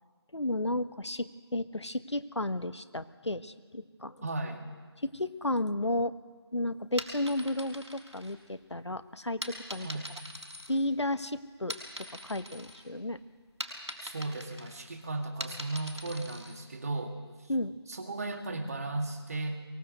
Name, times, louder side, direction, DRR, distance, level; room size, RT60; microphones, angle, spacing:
voice 1, 0.3-4.3 5.0-6.2 6.5-9.9 10.7-13.2 17.5-17.7, left 1 dB, 85° left, 12 dB, 1.3 m, -33 dB
voice 2, 4.2-4.7 9.8-10.1 14.0-17.5 17.9-19.6, right 2 dB, 35° right, 5 dB, 2.0 m, -36 dB
sound 1, 6.8-8.8 9.4-11.2 11.5-12.9 13.2-16.6, equal, 90° right, 5.8 m, -42 dB
23.0 x 20.0 x 8.1 m, 1.5 s
figure-of-eight pair, 165°, 14 cm